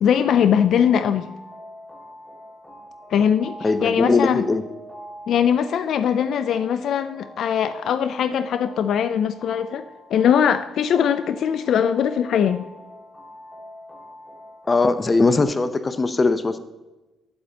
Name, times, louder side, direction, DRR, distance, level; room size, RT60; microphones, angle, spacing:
voice 1, 0.0-1.3 3.1-4.4 5.3-9.8 10.1-12.6, left 8 dB, 70° left, 11 dB, 0.4 m, -21 dB
sound 1, 0.5-15.4, equal, 10° left, 2.2 m, -44 dB
voice 2, 3.6-4.6 14.7-16.6, left 3 dB, 30° left, 11 dB, 0.7 m, -20 dB
11.0 x 8.6 x 2.9 m, 1.1 s
cardioid pair, 90°, 0 cm